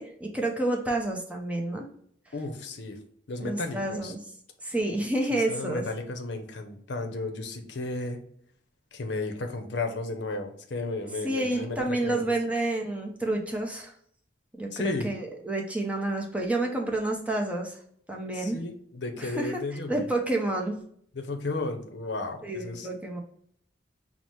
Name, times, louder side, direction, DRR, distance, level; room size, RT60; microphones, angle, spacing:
voice 1, 0.0-1.9 3.4-4.2 4.6-5.8 11.2-13.9 14.6-17.8 18.1-18.6 19.2-19.6 19.9-20.8 22.4-23.2, right 2 dB, 10° right, 0 dB, 0.6 m, -29 dB
voice 2, 2.3-3.0 3.3-4.1 5.3-8.2 8.9-12.2 14.7-15.1 18.3-20.1 21.1-22.9, left 2 dB, 70° left, 5 dB, 0.6 m, -34 dB
5.7 x 2.0 x 3.1 m, 0.64 s
head